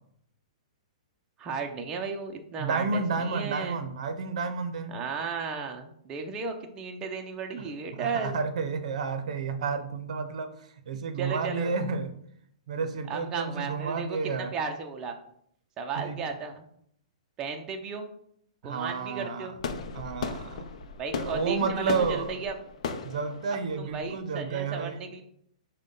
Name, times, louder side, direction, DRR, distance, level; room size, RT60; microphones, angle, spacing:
voice 1, 1.4-3.8 4.9-8.4 11.2-11.7 13.1-15.1 15.8-16.7 17.4-18.1 18.6-19.5 21.0-22.5 23.8-25.2, right 5 dB, 20° right, 3 dB, 0.5 m, -34 dB
voice 2, 2.6-5.0 7.9-12.2 12.7-14.5 16.0-16.2 18.6-19.6 19.9-20.7 21.1-22.4 23.0-25.0, right 5 dB, 65° right, 8 dB, 0.6 m, -31 dB
sound 1, 19.6-24.5, left 5 dB, 65° left, 0.5 m, -36 dB
6.2 x 2.2 x 3.8 m, 0.69 s
hypercardioid pair, 145°, 4 cm